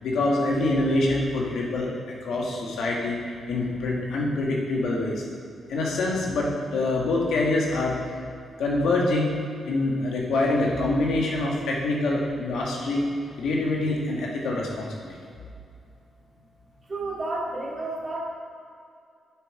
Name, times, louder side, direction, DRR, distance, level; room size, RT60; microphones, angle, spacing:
voice 1, 0.0-1.9 2.2-5.2 5.7-8.0 8.6-9.3 9.6-13.1 13.4-15.2, left 2 dB, 80° left, -2 dB, 1.6 m, -25 dB
voice 2, 16.9-18.2, right 2 dB, 35° right, -3 dB, 2.1 m, -31 dB
11.0 x 5.3 x 4.8 m, 2.3 s
cardioid pair, 75°, 0 cm